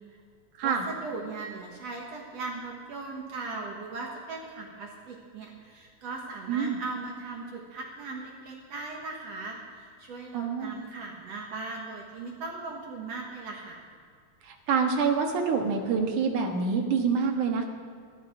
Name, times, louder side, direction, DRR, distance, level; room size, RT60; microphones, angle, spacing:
voice 1, 0.6-13.8, right 3 dB, 60° right, 0 dB, 2.4 m, -38 dB
voice 2, 6.5-6.8 10.3-10.7 14.4-17.7, right 5 dB, 85° right, 3 dB, 3.0 m, -26 dB
13.5 x 12.0 x 6.1 m, 2.1 s
omnidirectional pair, 3.4 m